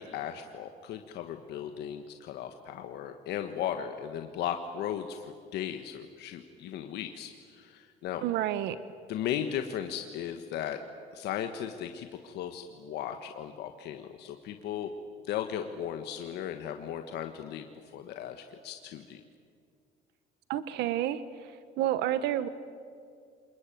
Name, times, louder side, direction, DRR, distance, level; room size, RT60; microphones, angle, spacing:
voice 1, 0.0-8.2 9.1-10.8 11.1-14.9 15.3-17.7 17.9-19.2, left 10 dB, 80° left, 6 dB, 1.4 m, -36 dB
voice 2, 8.2-8.8 20.5-22.5, right 12 dB, 85° right, 13 dB, 1.0 m, -30 dB
26.5 x 21.0 x 9.1 m, 2.3 s
cardioid pair, 110°, 17 cm